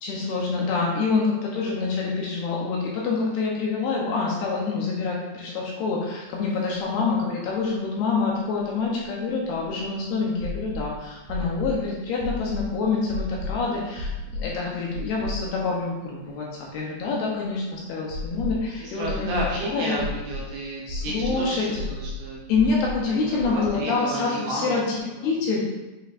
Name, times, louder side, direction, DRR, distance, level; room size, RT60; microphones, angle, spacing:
voice 1, 0.0-16.5 16.7-20.0 20.9-21.9 22.5-25.0 25.2-25.6, left 4 dB, 75° left, -3 dB, 2.6 m, -26 dB
voice 2, 6.5-6.8 13.4-14.0 18.8-22.4 23.1-24.8 25.1-25.3, right 1 dB, 75° right, -3 dB, 2.5 m, -33 dB
sound 1, 6.6-6.7 6.9-7.0 8.6-9.8 10.4-10.9 11.3-11.8 12.2-12.7 13.1-13.5 14.0-14.5 14.9-15.7 16.0-16.1 18.1-18.7 19.0-19.5 20.0-20.5 20.9-21.4 21.7-22.2 22.5-23.0 23.4-23.7, left 2 dB, 55° right, 3.4 m, -32 dB
8.1 x 5.4 x 2.6 m, 1.1 s
omnidirectional pair, 5.2 m